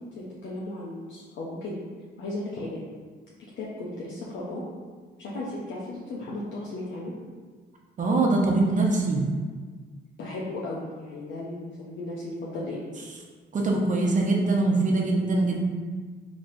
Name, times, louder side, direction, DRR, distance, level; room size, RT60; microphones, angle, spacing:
voice 1, 0.2-1.8 2.2-2.8 3.6-4.6 5.2-7.1 10.2-12.8, left 2 dB, 70° left, -6 dB, 0.7 m, -35 dB
voice 2, 8.0-9.2 13.5-15.6, right 2 dB, 40° right, -1 dB, 0.8 m, -23 dB
4.1 x 3.0 x 2.6 m, 1.5 s
cardioid pair, 90°, 20 cm